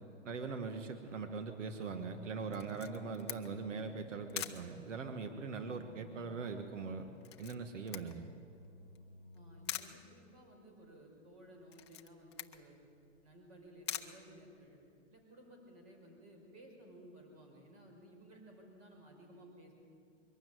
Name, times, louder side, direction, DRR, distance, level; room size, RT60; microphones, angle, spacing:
voice 1, 0.2-7.1 7.4-8.3, right 4 dB, 85° right, 7 dB, 1.5 m, -41 dB
sound 1, 1.3-11.2, left 1 dB, 15° right, 3.0 m, -58 dB
Camera, 2.5-15.0, left 12 dB, 25° left, 0.6 m, -48 dB
voice 2, 9.3-12.8 13.2-14.8 15.1-19.7, right 1 dB, 30° right, 2 dB, 4.7 m, -57 dB
23.0 x 12.5 x 9.1 m, 2.5 s
hypercardioid pair, 165°, 36 cm